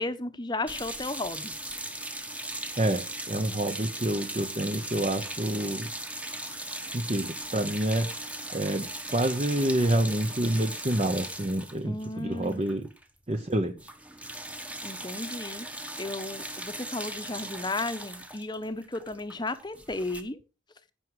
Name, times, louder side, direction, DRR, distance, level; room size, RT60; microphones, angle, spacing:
voice 1, 0.0-1.6 11.8-12.7 14.8-20.4, left 2 dB, 20° left, 0.9 m, -34 dB
sound 1, 0.7-13.0 13.3-13.5 13.8-20.2, right 1 dB, 5° right, 1.1 m, -38 dB
voice 2, 2.8-5.9 6.9-8.1 8.5-12.9 13.3-13.7, right 1 dB, 30° right, 0.8 m, -28 dB
15.5 x 6.1 x 4.8 m
head